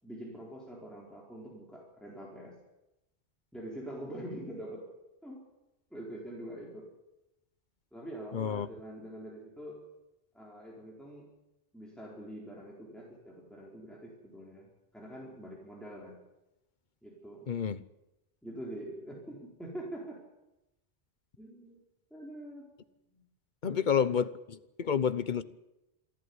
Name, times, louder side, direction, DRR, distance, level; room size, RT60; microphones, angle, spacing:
voice 1, 0.0-2.6 3.5-4.8 5.2-5.4 5.9-6.9 7.9-9.8 10.3-11.3 11.7-16.2 17.0-17.5 18.4-20.2 21.4-21.8 22.1-22.7 23.1-23.2 23.7-24.1, right 1 dB, ahead, 4.4 m, -45 dB
voice 2, 8.3-8.7 17.5-17.8 23.6-25.4, left 7 dB, 50° left, 1.0 m, -29 dB
27.5 x 11.5 x 9.7 m
omnidirectional pair, 1.1 m